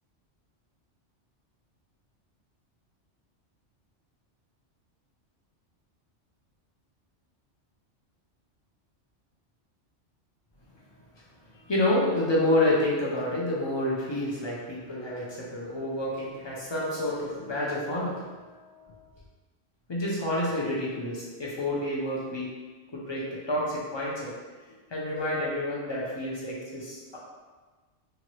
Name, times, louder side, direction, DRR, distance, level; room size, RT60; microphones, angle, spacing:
voice 1, 11.6-19.0 19.9-22.5 22.9-24.3 24.9-27.2, left 1 dB, 45° left, -5 dB, 0.3 m, -29 dB
2.8 x 2.5 x 3.0 m, 1.4 s
omnidirectional pair, 1.2 m